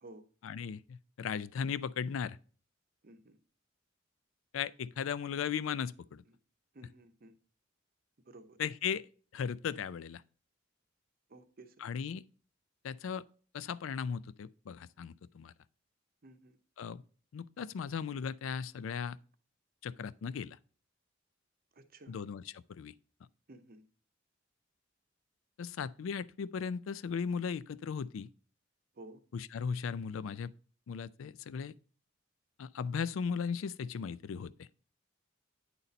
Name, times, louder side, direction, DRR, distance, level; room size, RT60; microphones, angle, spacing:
voice 1, 0.4-2.4 4.5-6.2 8.6-9.0 9.3-10.2 11.8-12.2 12.8-13.2 13.5-15.5 16.8-17.0 17.3-19.2 19.8-20.6 22.1-22.9 25.6-28.3 29.3-30.5 30.9-31.7 32.6-34.7, left 6 dB, 85° left, 0.4 m, -37 dB
voice 2, 3.0-3.4 6.3-6.4 6.7-7.3 8.3-8.6 11.3-11.7 16.2-16.6 21.8-22.2 23.5-23.8 28.9-29.2, right 2 dB, 50° right, 0.7 m, -53 dB
8.9 x 4.2 x 4.0 m
head